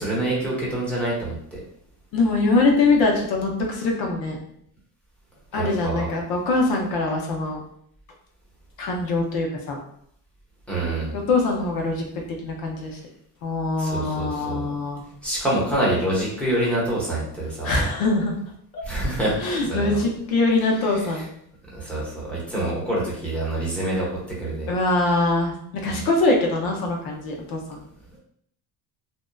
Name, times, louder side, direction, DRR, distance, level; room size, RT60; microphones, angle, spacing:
voice 1, 0.0-1.6 5.6-6.1 10.7-11.1 13.8-14.7 15.2-17.7 18.8-19.4 19.6-20.0 21.7-24.1 24.4-24.7 25.8-26.0, right 1 dB, 5° left, -7 dB, 0.9 m, -26 dB
voice 2, 2.1-4.4 5.5-7.6 8.8-9.8 11.1-13.0 13.4-15.0 17.6-18.4 18.7-18.8 19.4-21.3 24.7-27.8, left 2 dB, 60° left, 0 dB, 0.7 m, -23 dB
2.6 x 2.1 x 2.2 m, 0.69 s
cardioid pair, 135°, 39 cm